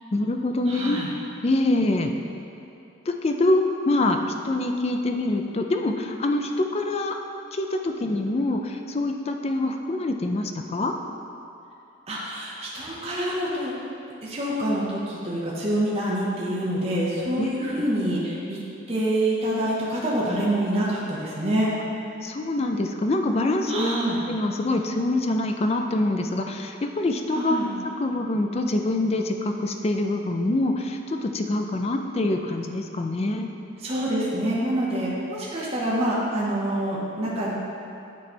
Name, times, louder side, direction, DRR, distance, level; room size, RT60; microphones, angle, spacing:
voice 1, 0.1-1.0 1.4-2.1 3.1-4.2 4.4-7.2 7.5-10.9 17.4-17.5 22.2-23.9 24.3-27.6 28.0-33.5, left 2 dB, 30° left, 4 dB, 0.3 m, -25 dB
voice 2, 0.7-1.1 12.1-13.7 14.2-18.6 18.9-21.7 23.7-24.2 27.3-27.7 33.8-37.5, right 1 dB, 30° right, -6 dB, 0.9 m, -26 dB
9.2 x 3.2 x 4.3 m, 2.8 s
head